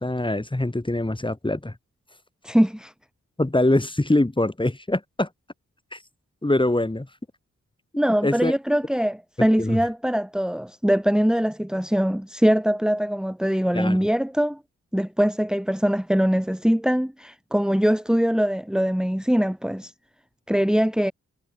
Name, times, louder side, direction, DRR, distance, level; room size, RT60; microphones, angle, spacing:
voice 1, 0.0-1.7 3.4-5.3 5.9-6.0 6.4-7.1 8.2-8.5 9.6-9.8 13.7-14.1, left 1 dB, 15° left, 6.7 m, -23 dB
voice 2, 2.4-2.9 8.0-14.6 14.9-19.9 20.5-21.1, equal, ahead, 3.5 m, -22 dB
wide cardioid pair, 85°, 29 cm